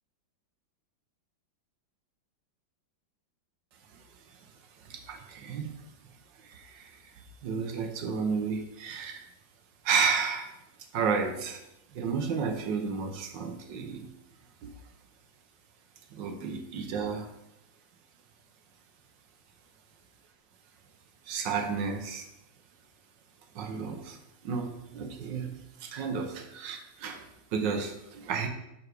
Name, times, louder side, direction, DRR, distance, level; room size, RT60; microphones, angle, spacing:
voice 1, 4.8-5.8 6.4-7.1 7.4-9.2 9.8-10.5 10.9-11.6 11.9-14.1 14.6-14.7 16.1-17.3 21.2-22.3 23.5-28.5, right 5 dB, 70° right, 6 dB, 1.6 m, -32 dB
7.3 x 6.1 x 4.9 m, 0.86 s
omnidirectional pair, 2.1 m